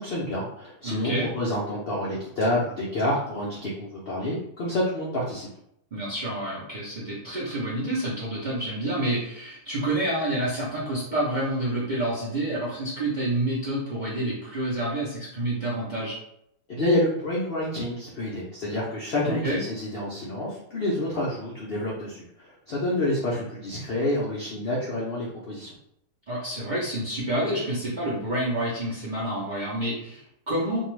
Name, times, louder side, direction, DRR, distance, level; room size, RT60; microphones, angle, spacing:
voice 1, 0.0-5.5 16.7-25.7, left 1 dB, 90° left, -5 dB, 0.5 m, -28 dB
voice 2, 0.8-1.3 5.9-16.2 19.2-19.6 23.3-23.4 26.3-30.8, right 1 dB, 50° right, -8 dB, 0.5 m, -28 dB
2.6 x 2.3 x 3.1 m, 0.75 s
omnidirectional pair, 1.7 m